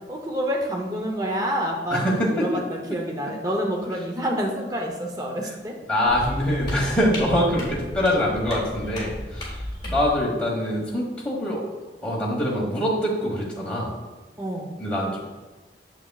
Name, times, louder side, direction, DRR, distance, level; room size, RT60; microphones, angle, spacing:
voice 1, 0.1-5.8 14.4-14.8, equal, 20° right, 0 dB, 0.7 m, -28 dB
voice 2, 1.9-2.6 2.9-3.0 5.9-9.6 9.8-11.6 12.0-13.9 14.8-15.2, equal, 5° left, -4 dB, 1.3 m, -24 dB
sound 1, 6.1-10.2, equal, 25° left, 1.8 m, -34 dB
6.9 x 6.1 x 2.3 m, 1.2 s
head